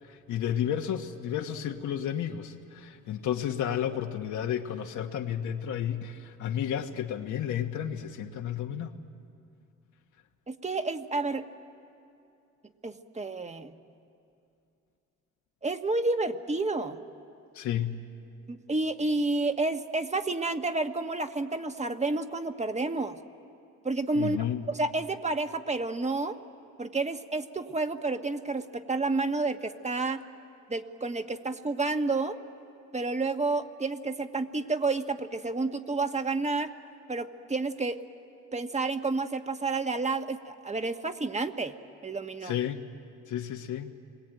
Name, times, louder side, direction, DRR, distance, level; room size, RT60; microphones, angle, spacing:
voice 1, 0.0-8.9 17.5-18.0 24.1-24.6 42.4-42.8 43.3-43.9, left 9 dB, 75° left, 2 dB, 1.4 m, -32 dB
voice 2, 10.5-11.4 12.8-13.7 15.6-17.0 18.5-23.2 23.8-26.4 26.8-30.2 30.7-32.4 32.9-36.7 37.1-38.0 38.5-41.7 42.0-42.5, right 3 dB, 20° right, 7 dB, 1.5 m, -30 dB
30.0 x 22.0 x 9.1 m, 2.6 s
cardioid pair, 90°, 30 cm